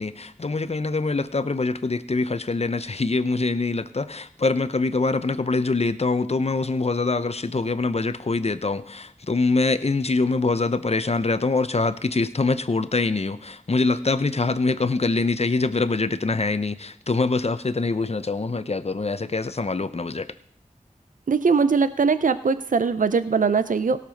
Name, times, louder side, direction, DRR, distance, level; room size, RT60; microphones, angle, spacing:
voice 1, 0.0-20.3, left 3 dB, 50° left, 0.7 m, -24 dB
voice 2, 21.3-24.0, right 5 dB, 75° right, 0.5 m, -21 dB
17.0 x 6.8 x 5.2 m
wide cardioid pair, 45°, 14 cm